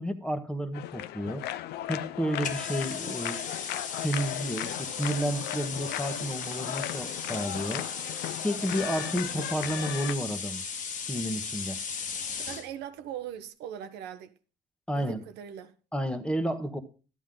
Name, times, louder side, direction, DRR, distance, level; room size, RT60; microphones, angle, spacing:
voice 1, 0.0-1.4 1.9-3.4 4.0-7.9 8.4-10.6 11.1-11.8 14.9-15.2 15.9-16.8, equal, 5° left, 1.3 m, -31 dB
sound 1, 0.7-10.1, left 13 dB, 75° left, 0.6 m, -37 dB
sound 2, 2.4-12.7, left 6 dB, 50° left, 1.5 m, -37 dB
voice 2, 12.5-14.3 14.9-15.7, right 10 dB, 85° right, 1.0 m, -40 dB
12.0 x 9.3 x 3.8 m
cardioid pair, 110°, 17 cm